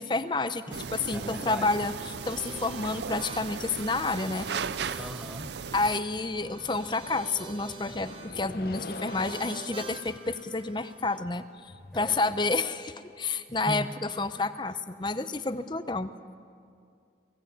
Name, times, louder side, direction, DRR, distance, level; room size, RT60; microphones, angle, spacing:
voice 1, 0.0-1.9 2.3-4.5 4.8-5.0 5.7-13.9 14.2-16.1, left 3 dB, 25° left, 11 dB, 0.7 m, -30 dB
voice 2, 0.7-1.8 5.0-5.6 11.9-12.3 13.5-13.9 14.6-14.7, equal, ahead, 6 dB, 0.9 m, -39 dB
sound 1, 0.7-6.0, right 6 dB, 80° right, 0.5 m, -37 dB
sound 2, 1.2-11.2, right 4 dB, 30° right, 1.2 m, -47 dB
sound 3, 4.5-12.9, left 3 dB, 55° left, 0.7 m, -47 dB
22.5 x 17.5 x 8.8 m, 2.3 s
head